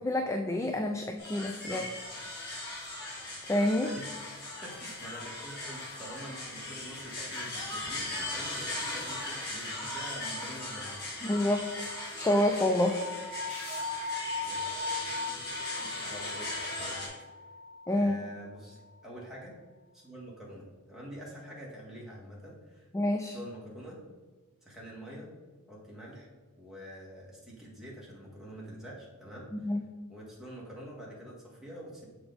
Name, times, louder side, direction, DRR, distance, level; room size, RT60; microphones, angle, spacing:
voice 1, 0.0-1.8 3.4-3.9 11.2-13.0 17.9-18.2 22.9-23.4 29.5-29.8, left 1 dB, 15° left, 4 dB, 0.3 m, -28 dB
sound 1, 1.2-17.1, left 2 dB, 50° left, 2.1 m, -39 dB
voice 2, 4.6-11.3 14.4-14.6 15.3-17.1 17.9-19.5 19.9-22.9 23.3-24.0 24.6-25.3 25.7-26.3 26.6-29.5 30.1-32.1, equal, ahead, -5 dB, 1.6 m, -46 dB
sound 2, 12.9-18.0, left 3 dB, 60° right, 1.0 m, -38 dB
6.3 x 4.5 x 3.9 m, 1.3 s
head